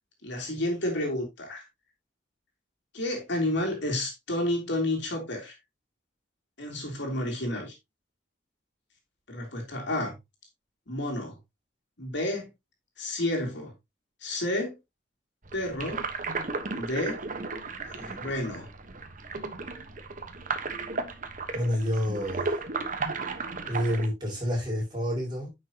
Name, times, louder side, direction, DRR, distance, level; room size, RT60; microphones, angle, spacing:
voice 1, 0.2-1.7 2.9-5.5 6.6-7.7 9.3-10.1 10.9-11.4 12.0-12.5 13.0-13.7 14.2-14.7 15.5-16.0 16.7-17.2 17.9-18.7, left 1 dB, 65° left, 3.3 m, -30 dB
sound 1, 15.4-24.1, right 3 dB, 45° right, 1.2 m, -34 dB
voice 2, 21.5-22.6 23.7-25.5, equal, 25° right, 5.9 m, -29 dB
9.8 x 6.6 x 2.9 m
head